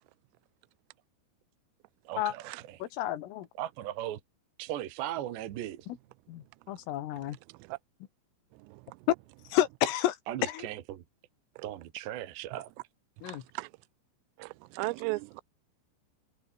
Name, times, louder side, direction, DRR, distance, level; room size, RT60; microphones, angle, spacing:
voice 1, 2.1-2.8 3.6-4.2 4.6-5.9 10.3-11.0 11.6-12.7, right 12 dB, 65° right, 3.5 m, -37 dB
voice 2, 2.8-3.5 5.9-6.0 6.3-7.4 9.1-9.2 9.5-10.2 10.4-10.7 13.2-13.4, left 13 dB, 85° left, 4.4 m, -30 dB
voice 3, 13.2-13.7 14.4-15.4, right 26 dB, 85° right, 3.2 m, -36 dB
omnidirectional pair, 5.8 m